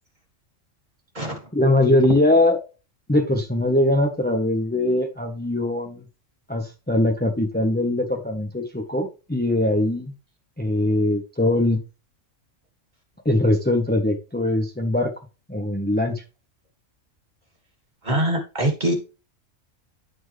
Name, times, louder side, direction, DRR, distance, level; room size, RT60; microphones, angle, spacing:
voice 1, 1.5-2.6 3.1-6.0 6.5-10.1 10.6-11.8 13.2-15.1 15.5-16.2, left 1 dB, 10° left, 1.1 m, -21 dB
voice 2, 18.0-18.9, right 1 dB, 35° right, 2.7 m, -23 dB
13.0 x 4.6 x 3.3 m
omnidirectional pair, 1.3 m